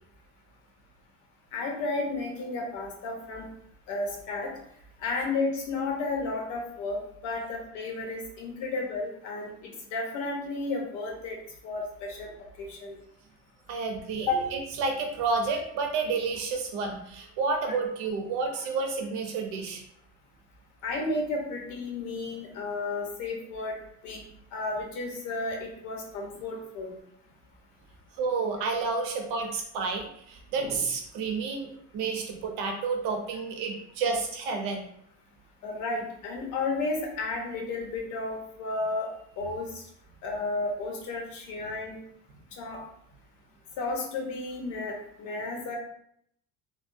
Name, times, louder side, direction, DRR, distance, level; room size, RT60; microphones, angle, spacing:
voice 1, 1.5-3.5 3.9-4.5 5.0-11.4 11.6-12.3 12.6-13.0 14.3-14.4 17.7-17.8 20.8-23.7 24.0-24.2 24.5-26.9 35.6-39.1 39.4-39.8 40.2-42.0 42.6-42.8 43.8-45.8, left 3 dB, 65° left, 0 dB, 0.9 m, -32 dB
voice 2, 13.7-19.8 28.2-34.9, right 4 dB, 90° right, 3 dB, 0.8 m, -30 dB
3.3 x 2.3 x 2.6 m, 0.71 s
cardioid pair, 175°, 32 cm